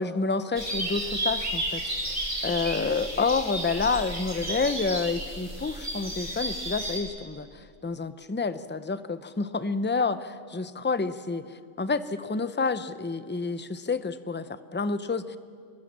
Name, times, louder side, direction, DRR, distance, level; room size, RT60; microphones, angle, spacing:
voice 1, 0.0-2.1 2.4-11.5 11.8-15.4, left 4 dB, 15° left, 12 dB, 0.5 m, -29 dB
sound 1, 0.6-7.0, right 1 dB, 40° right, 3.9 m, -32 dB
26.5 x 21.0 x 7.3 m, 2.3 s
omnidirectional pair, 1.3 m